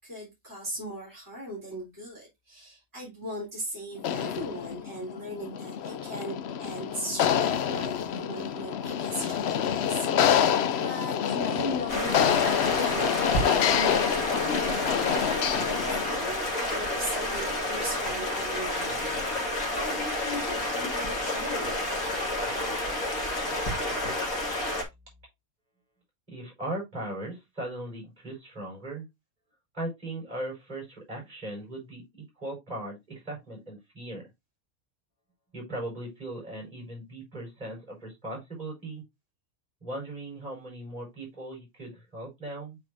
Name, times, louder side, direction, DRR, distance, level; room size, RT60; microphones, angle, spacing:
voice 1, 0.0-15.0 15.8-19.1 19.7-22.0, equal, 15° right, 3.8 m, -38 dB
sound 1, 4.0-16.3, left 9 dB, 60° left, 0.8 m, -27 dB
Stream, 11.9-24.8, left 1 dB, 85° left, 2.5 m, -30 dB
voice 2, 26.3-29.1 29.7-34.2 35.5-39.0 39.8-42.8, right 1 dB, 30° right, 4.9 m, -38 dB
8.0 x 4.7 x 2.6 m
omnidirectional pair, 1.4 m